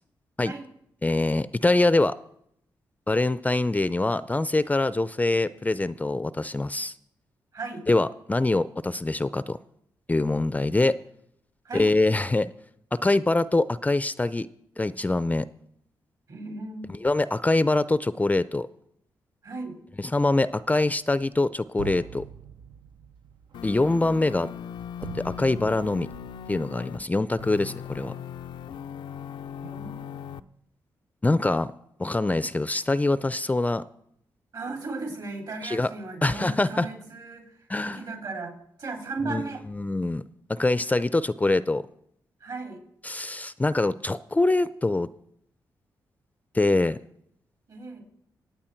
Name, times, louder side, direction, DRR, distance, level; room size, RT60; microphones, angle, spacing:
voice 1, 1.0-2.2 3.1-6.9 7.9-9.6 10.1-11.0 11.7-12.5 12.9-14.5 14.8-15.5 17.0-18.7 20.1-22.2 23.6-24.5 25.1-26.1 26.5-28.1 31.2-31.7 32.0-33.8 35.6-35.9 36.2-36.9 37.7-38.0 39.2-40.2 40.5-41.9 43.0-45.1 46.5-47.0, left 2 dB, 20° left, 16 dB, 0.4 m, -24 dB
voice 2, 7.5-7.8 11.6-11.9 16.3-16.9 19.4-19.8 29.6-30.3 34.5-39.6 42.4-42.8 47.7-48.0, right 3 dB, 60° right, 2 dB, 4.2 m, -36 dB
sound 1, 20.6-21.4 21.8-26.7, right 9 dB, 75° right, 0.6 m, -44 dB
sound 2, 23.5-27.0 27.4-30.4, left 8 dB, 85° left, 0.5 m, -39 dB
23.0 x 8.6 x 4.5 m, 0.72 s
cardioid pair, 60°, 8 cm